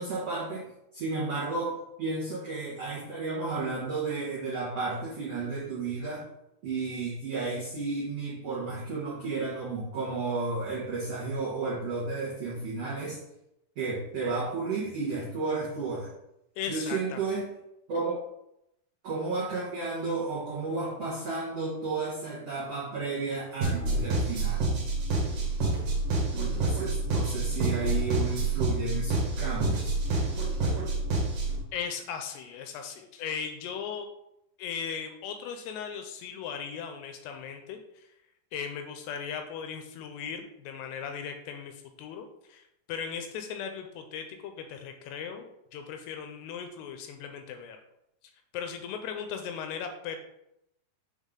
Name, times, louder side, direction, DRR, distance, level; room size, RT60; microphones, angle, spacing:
voice 1, 0.0-6.3 6.6-13.2 13.7-16.1 16.7-17.5 17.9-18.2 19.0-24.7 26.3-30.0, right 3 dB, 85° right, -7 dB, 1.3 m, -32 dB
voice 2, 16.6-17.4 31.7-34.1 34.6-38.1 38.5-47.8 48.5-50.2, left 7 dB, 80° left, 5 dB, 2.5 m, -38 dB
sound 1, 23.6-31.6, right 2 dB, 60° right, 2.7 m, -28 dB
7.3 x 3.7 x 3.7 m, 0.84 s
omnidirectional pair, 5.0 m